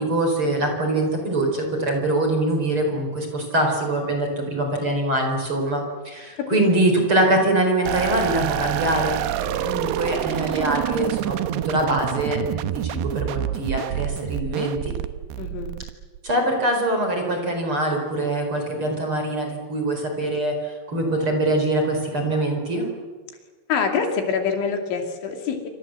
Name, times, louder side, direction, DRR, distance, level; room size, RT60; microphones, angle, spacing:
voice 1, 0.0-14.9 16.2-22.9, right 1 dB, 25° right, 3 dB, 4.8 m, -23 dB
sound 1, 7.9-16.3, right 12 dB, 75° right, 2.5 m, -27 dB
voice 2, 15.4-15.7 23.7-25.7, left 6 dB, 70° left, 4 dB, 5.0 m, -25 dB
27.5 x 26.0 x 7.8 m, 1.4 s
omnidirectional pair, 5.7 m